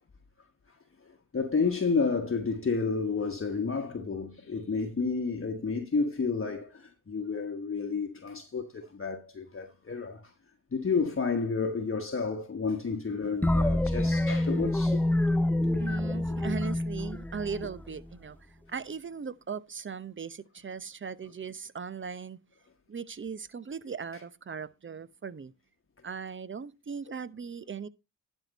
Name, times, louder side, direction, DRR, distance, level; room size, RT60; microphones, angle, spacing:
voice 1, 1.3-10.2 10.7-15.0 15.6-15.7, left 4 dB, 30° left, 1.3 m, -30 dB
sound 1, 13.4-18.1, left 1 dB, 5° left, 0.4 m, -27 dB
voice 2, 15.8-18.4 18.7-22.4 22.9-25.5 26.0-27.9, right 6 dB, 25° right, 0.9 m, -38 dB
11.5 x 4.5 x 5.2 m
supercardioid pair, 50°, 46 cm